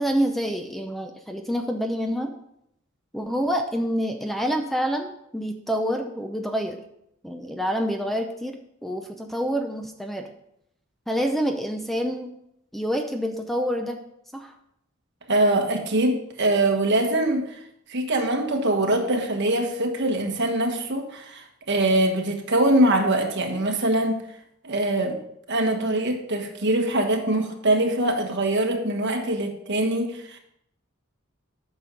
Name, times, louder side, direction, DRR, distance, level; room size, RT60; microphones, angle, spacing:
voice 1, 0.0-2.3 3.1-6.8 7.2-8.6 8.8-10.3 11.1-12.3 12.7-14.0 14.3-14.5, equal, ahead, 5 dB, 0.6 m, -27 dB
voice 2, 15.3-17.6 17.9-24.2 24.6-25.2 25.5-30.4, right 1 dB, 60° right, 3 dB, 1.5 m, -23 dB
8.8 x 6.2 x 5.3 m, 0.76 s
head